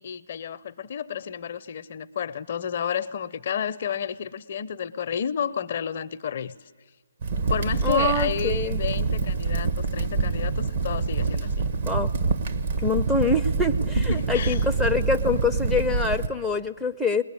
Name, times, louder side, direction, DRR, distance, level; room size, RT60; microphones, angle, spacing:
voice 1, 0.0-6.6 7.4-11.7 14.0-14.6, left 8 dB, 45° left, 13 dB, 0.6 m, -31 dB
Crackle, 7.2-16.3, right 4 dB, 50° right, 1.4 m, -26 dB
voice 2, 7.8-8.8 11.9-12.1 12.8-17.2, left 3 dB, ahead, 2 dB, 0.6 m, -25 dB
20.5 x 20.5 x 9.8 m, 1.4 s
figure-of-eight pair, 145°, 0 cm